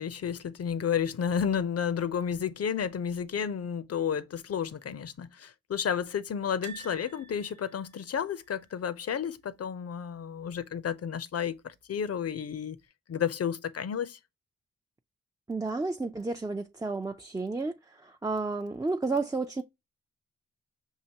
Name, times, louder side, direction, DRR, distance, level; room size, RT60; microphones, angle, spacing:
voice 1, 0.0-12.8 13.1-14.2, left 8 dB, 55° left, 0.6 m, -31 dB
sound 1, 6.6-9.7 9.9-10.1 10.4-10.5 11.7-12.3 12.8-12.9, right 5 dB, 80° right, 1.0 m, -50 dB
voice 2, 15.5-19.6, right 3 dB, 10° right, 0.5 m, -32 dB
5.6 x 2.8 x 2.8 m
supercardioid pair, 40°, 29 cm